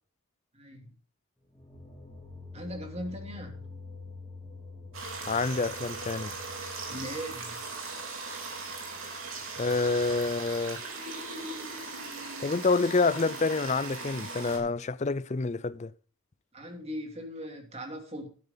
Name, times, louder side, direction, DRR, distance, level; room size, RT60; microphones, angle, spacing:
voice 1, 0.5-0.9 2.5-3.7 6.9-7.6 16.5-18.3, equal, 30° right, 2.8 m, -39 dB
sound 1, 1.4-10.4, left 3 dB, 10° left, 2.6 m, -48 dB
sound 2, 4.9-14.6, right 3 dB, 65° right, 3.4 m, -39 dB
voice 2, 5.3-6.3 9.6-10.8 12.4-15.9, left 3 dB, 30° left, 0.4 m, -27 dB
13.0 x 8.8 x 3.9 m
head